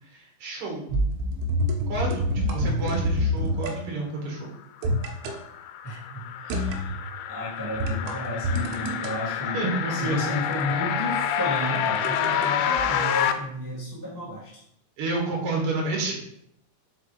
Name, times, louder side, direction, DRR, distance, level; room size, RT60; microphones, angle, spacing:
voice 1, 0.1-0.9 1.9-2.2 2.5-4.5 9.5-10.2 15.0-16.2, right 2 dB, 45° right, -1 dB, 2.1 m, -29 dB
sound 1, 0.9-3.8 4.8-5.4 6.5-7.0 7.8-9.1 10.5-12.5 12.8-12.9, equal, 85° right, 2.9 m, -27 dB
sound 2, 5.0-13.3, left 9 dB, 85° left, 2.4 m, -28 dB
voice 2, 5.8-7.0 7.3-9.6 9.9-14.6, left 1 dB, 5° right, -6 dB, 1.4 m, -33 dB
5.0 x 4.7 x 4.9 m, 0.73 s
omnidirectional pair, 4.4 m